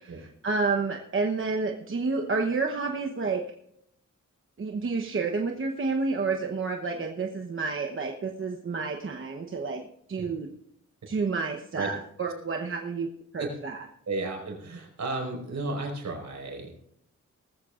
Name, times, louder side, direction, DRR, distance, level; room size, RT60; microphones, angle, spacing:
voice 1, 0.0-3.4 4.6-9.8 10.1-10.5 11.1-13.1 13.3-13.8, right 4 dB, 40° right, 2 dB, 1.0 m, -30 dB
voice 2, 14.1-16.7, right 3 dB, 65° right, 1 dB, 5.1 m, -33 dB
19.0 x 15.0 x 2.5 m, 0.73 s
wide cardioid pair, 155°, 30 cm